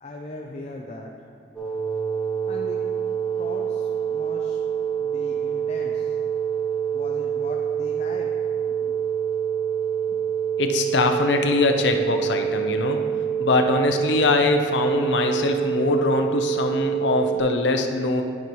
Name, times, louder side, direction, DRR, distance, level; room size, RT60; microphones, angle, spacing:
voice 1, 0.0-1.1 2.5-2.8 3.4-4.6 5.0-6.1 6.9-8.3 8.7-9.1, left 2 dB, 35° left, 0 dB, 0.5 m, -39 dB
sound 1, 1.5-17.4, right 8 dB, ahead, 1.6 m, -26 dB
voice 2, 10.6-13.1 13.4-18.2, left 3 dB, 80° left, 5 dB, 0.6 m, -22 dB
12.0 x 5.4 x 3.0 m, 2.4 s
head